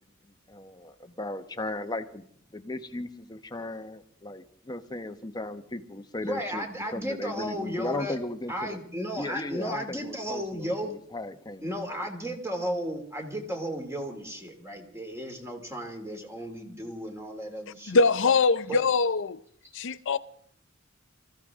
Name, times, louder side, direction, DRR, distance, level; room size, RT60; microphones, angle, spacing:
voice 1, 0.5-2.2 2.5-6.6 6.9-8.8 9.2-12.0, left 2 dB, 20° left, 1.0 m, -36 dB
voice 2, 6.2-8.1 8.5-10.9 11.6-18.0 18.6-18.8, equal, 15° right, 2.6 m, -34 dB
voice 3, 17.9-19.4 19.7-20.2, left 4 dB, 60° left, 0.6 m, -23 dB
25.0 x 15.0 x 3.6 m
head